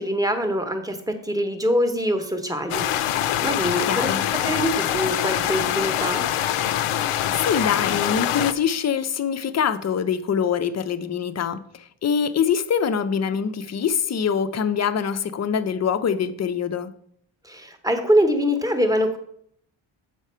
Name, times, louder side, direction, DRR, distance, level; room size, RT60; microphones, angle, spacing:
voice 1, 0.0-4.1 4.4-6.2 17.4-19.2, equal, 5° right, 0.8 m, -24 dB
sound 1, 2.7-8.5, left 11 dB, 80° left, 0.6 m, -24 dB
voice 2, 3.9-4.2 7.3-16.9, left 7 dB, 35° left, 0.5 m, -24 dB
7.4 x 4.8 x 5.5 m
wide cardioid pair, 135°, 50 cm